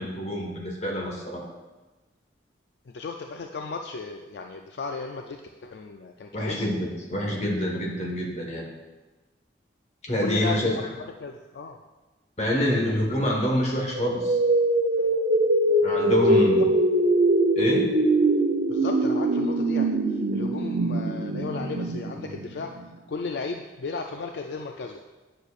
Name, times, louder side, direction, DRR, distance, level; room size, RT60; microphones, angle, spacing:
voice 1, 0.0-1.4 6.3-8.7 10.0-10.9 12.4-14.4 15.8-16.7 17.5-17.9, left 1 dB, 35° left, -1 dB, 1.4 m, -26 dB
voice 2, 2.9-6.7 10.2-11.8 12.9-13.0 16.1-16.3 16.6-16.7 18.7-22.7 23.1-25.0, left 4 dB, 65° left, 3 dB, 0.4 m, -35 dB
sound 1, 13.9-22.9, right 1 dB, 75° right, 0.7 m, -23 dB
9.2 x 6.5 x 2.4 m, 1.2 s
head